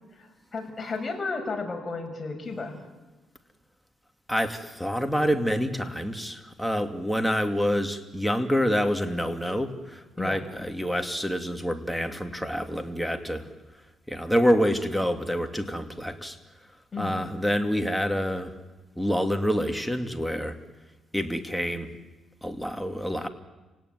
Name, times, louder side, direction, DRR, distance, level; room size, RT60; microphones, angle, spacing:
voice 1, 0.1-2.8 10.2-10.5 16.9-17.2, left 3 dB, 25° left, 3 dB, 6.5 m, -33 dB
voice 2, 4.3-13.5 14.1-16.4 17.0-18.5 19.0-20.6 21.1-21.9 22.4-23.3, equal, ahead, 5 dB, 2.4 m, -27 dB
30.0 x 18.0 x 9.4 m, 1.2 s
cardioid pair, 90°, 0 cm